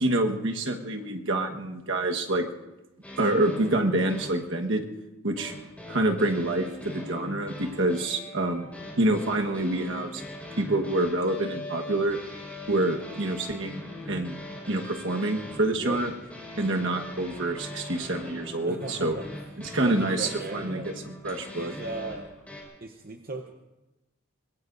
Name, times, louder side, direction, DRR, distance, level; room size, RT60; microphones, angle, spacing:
voice 1, 0.0-2.5 3.2-4.9 5.2-5.5 5.9-8.7 9.0-10.2 10.6-12.2 12.7-14.4 14.7-16.1 16.6-19.2 19.6-21.7, right 1 dB, 65° right, 3 dB, 1.4 m, -27 dB
sound 1, 3.0-4.5 5.4-22.6, left 1 dB, 5° left, 4.9 m, -41 dB
voice 2, 15.7-16.0 18.6-19.3 19.8-20.9 21.5-22.3 22.8-23.5, right 3 dB, 45° right, 4 dB, 0.8 m, -37 dB
24.5 x 21.0 x 2.6 m, 1.0 s
head